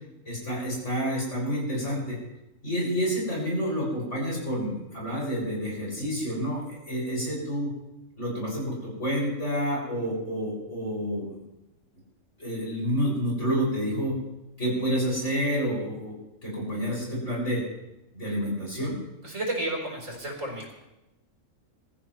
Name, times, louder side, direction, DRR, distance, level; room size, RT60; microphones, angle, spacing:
voice 1, 0.3-2.2 2.6-7.7 8.2-11.3 12.4-14.1 14.6-16.1 16.4-17.6 18.1-19.0, equal, 65° left, -4 dB, 6.9 m, -29 dB
voice 2, 19.2-20.7, right 1 dB, 75° right, -1 dB, 4.6 m, -32 dB
23.0 x 14.0 x 3.2 m, 0.93 s
omnidirectional pair, 1.3 m